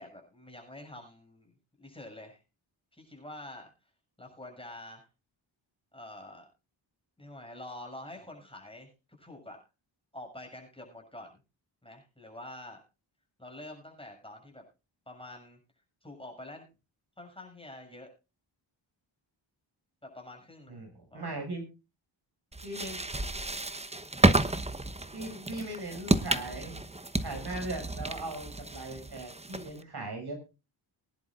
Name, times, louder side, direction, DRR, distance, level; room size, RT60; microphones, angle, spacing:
voice 1, 0.0-2.4 2.9-3.7 4.2-5.1 5.9-6.5 7.2-8.9 9.2-9.6 10.1-11.4 11.8-12.8 13.4-14.6 15.1-15.6 16.0-16.7 17.2-18.1 20.0-20.9 21.1-21.4, left 1 dB, 10° left, 2 dB, 7.1 m, -46 dB
voice 2, 20.7-21.6 22.6-23.1 25.1-26.7 27.2-30.3, right 2 dB, 50° right, 3 dB, 6.3 m, -39 dB
sound 1, 22.5-29.8, right 2 dB, 15° right, 1.0 m, -30 dB
23.0 x 10.5 x 2.5 m, 0.30 s
wide cardioid pair, 95°, 48 cm